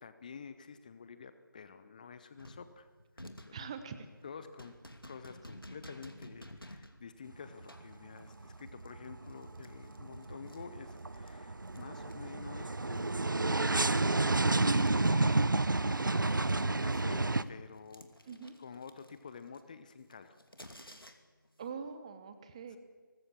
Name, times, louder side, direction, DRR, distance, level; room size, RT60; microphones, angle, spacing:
voice 1, 0.0-2.9 3.2-3.7 4.2-4.8 5.0-13.4 14.7-15.4 16.0-18.1 18.6-20.4 22.7-22.8, left 6 dB, 20° left, 11 dB, 1.0 m, -50 dB
sound 1, 2.4-11.3 11.7-15.7 15.9-21.5, left 1 dB, 90° left, 2.6 m, -54 dB
voice 2, 3.5-4.1 18.3-18.5 21.6-22.8, right 6 dB, 15° right, 10 dB, 1.0 m, -43 dB
sound 2, 7.3-7.9 8.2-17.4, right 2 dB, 65° right, 0.9 m, -30 dB
23.5 x 20.0 x 7.2 m, 1.4 s
figure-of-eight pair, 160°, 12 cm